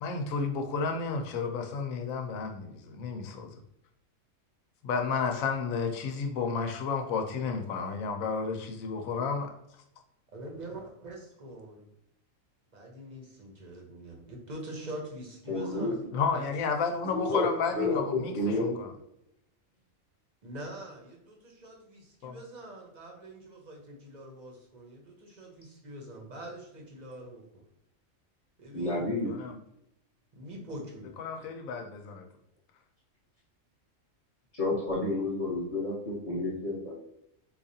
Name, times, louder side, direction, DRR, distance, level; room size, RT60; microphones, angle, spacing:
voice 1, 0.0-3.5 4.8-9.5 16.1-18.9 22.2-22.4 29.2-29.6 31.2-32.3, left 5 dB, 80° left, 4 dB, 1.0 m, -32 dB
voice 2, 10.3-11.8 12.7-16.4 17.1-17.5 17.8-17.9 20.4-27.6 28.6-29.1 30.3-31.1, right 1 dB, 40° right, 0 dB, 0.8 m, -44 dB
voice 3, 15.5-16.0 17.0-18.8 28.7-29.3 34.5-36.9, left 2 dB, 30° left, -6 dB, 1.1 m, -30 dB
4.5 x 2.4 x 2.7 m, 0.77 s
omnidirectional pair, 1.4 m